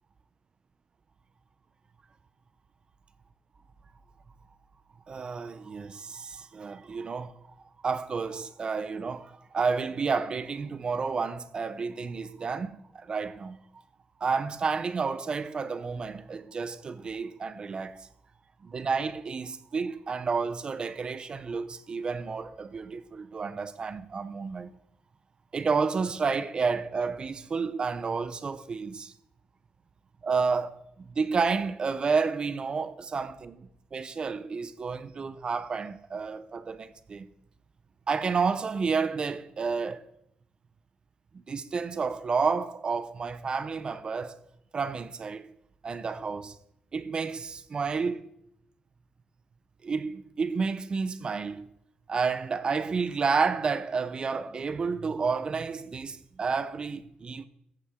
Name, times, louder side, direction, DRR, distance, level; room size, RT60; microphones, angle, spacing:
voice 1, 5.1-7.3 7.8-13.6 14.2-18.0 18.6-24.7 25.5-29.1 30.2-37.3 38.1-40.0 41.3-44.4 44.7-45.5 45.8-46.6 46.9-48.3 49.8-51.7 52.1-57.5, right 5 dB, 35° right, 0.6 m, -30 dB
14.5 x 8.6 x 3.6 m
cardioid pair, 140°, 3 cm